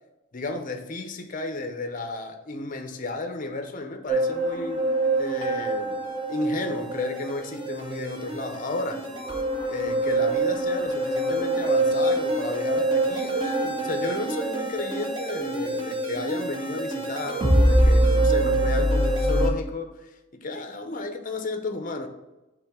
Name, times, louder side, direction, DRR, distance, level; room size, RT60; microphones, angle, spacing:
voice 1, 0.3-4.9 5.2-9.1 9.7-22.1, left 2 dB, 40° left, 0.6 m, -32 dB
sound 1, 4.1-19.5, right 1 dB, 25° right, 0.9 m, -25 dB
5.7 x 3.7 x 6.0 m
head